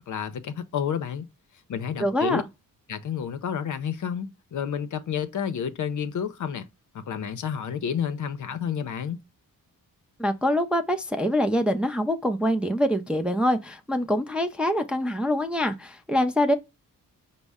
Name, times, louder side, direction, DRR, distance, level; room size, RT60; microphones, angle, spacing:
voice 1, 0.1-1.3 1.7-2.4 2.9-6.7 6.9-9.2, left 8 dB, 60° left, 0.6 m, -30 dB
voice 2, 2.0-2.4 10.2-16.5, equal, 5° right, 0.4 m, -24 dB
5.2 x 2.0 x 3.5 m
wide cardioid pair, 110°, 35 cm